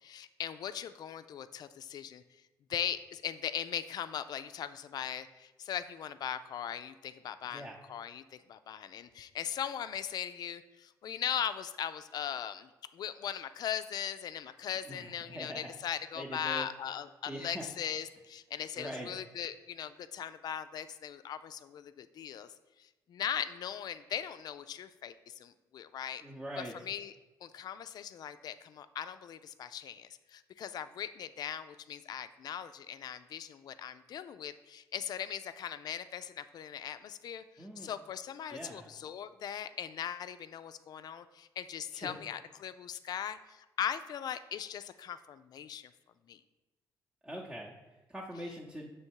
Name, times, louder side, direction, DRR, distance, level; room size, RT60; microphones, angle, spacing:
voice 1, 0.0-2.2 2.7-22.5 22.8-26.2 26.6-27.1 27.4-45.9 46.3-46.4, left 9 dB, 60° left, 12 dB, 0.3 m, -39 dB
voice 2, 14.9-15.7 16.2-16.7 17.3-17.7 18.8-19.1 26.2-26.7 37.6-37.9 38.5-38.8 41.9-42.1 47.2-47.7 48.1-48.9, right 1 dB, 10° right, -4 dB, 0.8 m, -42 dB
6.5 x 3.2 x 4.5 m, 1.1 s
cardioid pair, 75°, 8 cm